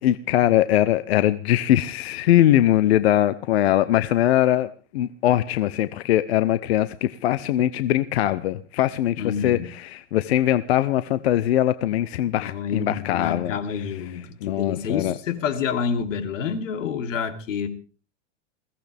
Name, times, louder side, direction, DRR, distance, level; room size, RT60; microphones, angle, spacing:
voice 1, 0.0-9.2 9.4-13.5 14.4-15.1, left 13 dB, 55° left, 13 dB, 0.8 m, -21 dB
voice 2, 9.2-9.7 12.4-17.7, left 6 dB, 90° left, 6 dB, 3.2 m, -28 dB
21.5 x 16.5 x 3.5 m, 0.37 s
supercardioid pair, 175°, 37 cm